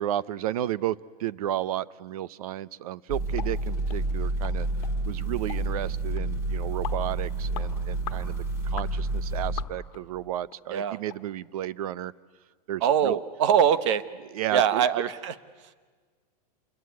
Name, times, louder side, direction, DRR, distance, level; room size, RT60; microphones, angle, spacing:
voice 1, 0.0-4.7 5.1-12.1 12.7-13.2 14.3-14.9, right 12 dB, 60° right, 19 dB, 0.8 m, -33 dB
sound 1, 3.1-9.6, right 2 dB, 15° right, 2.4 m, -29 dB
sound 2, 3.4-3.5 3.9-4.0 4.4-4.6 4.8-4.9 5.5-5.6 6.2-6.3 6.8-7.0 7.5-7.7 8.1-8.2 8.8-8.9 9.6-10.0 10.5-10.6 11.1-11.2 11.6-11.7, left 14 dB, 50° left, 1.7 m, -39 dB
voice 2, 12.8-14.0 14.5-15.3, right 8 dB, 45° right, 14 dB, 1.1 m, -23 dB
27.5 x 22.0 x 9.5 m, 1.5 s
supercardioid pair, 170°, 21 cm